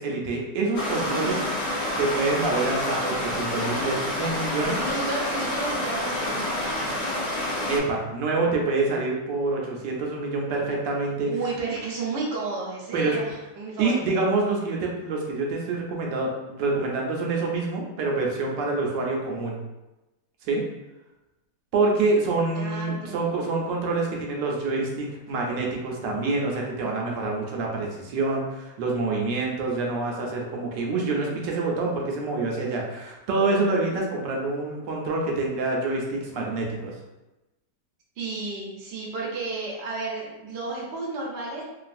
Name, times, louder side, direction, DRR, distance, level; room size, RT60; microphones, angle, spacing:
voice 1, 0.0-1.4 2.0-4.8 7.7-11.3 12.9-13.2 13.8-19.6 20.4-20.6 21.7-36.9, right 3 dB, 80° right, -1 dB, 1.2 m, -26 dB
Stream, 0.7-7.8, left 1 dB, 90° left, 0.5 m, -28 dB
voice 2, 1.0-1.4 4.5-7.4 11.3-14.0 22.5-23.3 38.2-41.6, right 3 dB, 55° right, -4 dB, 0.7 m, -32 dB
3.1 x 2.3 x 2.5 m, 1.0 s
omnidirectional pair, 1.9 m